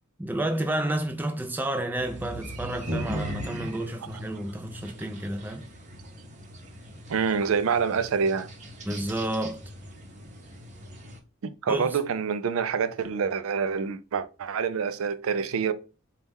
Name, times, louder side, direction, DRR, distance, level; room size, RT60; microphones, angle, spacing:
voice 1, 0.2-5.7 8.9-9.6 11.7-12.0, right 1 dB, 10° right, 0.4 m, -30 dB
sound 1, 1.9-11.2, equal, 35° right, 0.7 m, -39 dB
voice 2, 7.1-8.5 11.4-15.7, right 6 dB, 75° right, 0.4 m, -27 dB
4.1 x 2.3 x 3.4 m
head